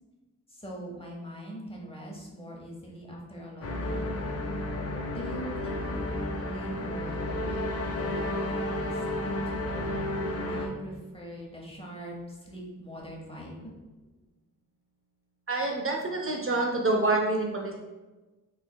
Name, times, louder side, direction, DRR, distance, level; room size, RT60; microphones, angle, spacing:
voice 1, 0.5-4.1 5.1-10.1 10.4-13.7, equal, 15° left, -3 dB, 0.8 m, -42 dB
Sweeping Sad Strings, 3.6-10.7, left 1 dB, 45° left, 0.5 m, -32 dB
voice 2, 15.5-17.7, right 2 dB, 40° right, 0 dB, 0.4 m, -27 dB
4.0 x 3.0 x 2.2 m, 1.2 s
wide cardioid pair, 95°, 33 cm